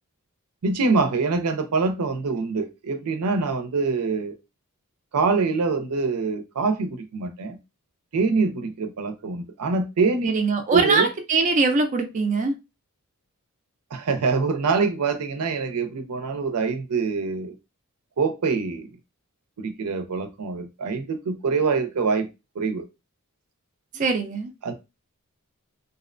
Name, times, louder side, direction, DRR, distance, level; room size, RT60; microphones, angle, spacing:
voice 1, 0.6-4.3 5.1-7.6 8.1-10.3 10.7-11.1 13.9-17.5 18.2-18.9 19.6-22.3 22.6-22.9 24.6-24.7, right 4 dB, 90° right, 0.5 m, -24 dB
voice 2, 10.2-12.5 23.9-24.5, right 3 dB, 35° right, 0.4 m, -22 dB
2.6 x 2.1 x 2.5 m
head